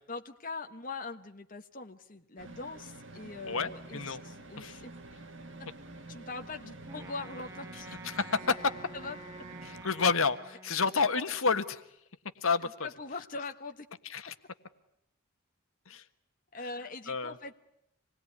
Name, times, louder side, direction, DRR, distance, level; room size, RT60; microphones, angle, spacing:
voice 1, 0.1-4.9 6.1-7.9 8.9-9.2 12.6-13.9 16.5-17.5, left 3 dB, 40° left, 5 dB, 1.4 m, -42 dB
sound 1, 2.4-9.8, right 2 dB, 55° right, 2.1 m, -48 dB
voice 2, 3.5-4.2 4.6-4.8 8.0-8.7 9.6-11.8 12.4-12.9 14.0-14.3 15.9-16.0 17.1-17.3, left 5 dB, 70° left, 10 dB, 1.5 m, -29 dB
Wind instrument woodwind instrument, 6.9-11.3, right 2 dB, 15° right, 1.9 m, -49 dB
27.0 x 20.5 x 9.7 m, 0.81 s
head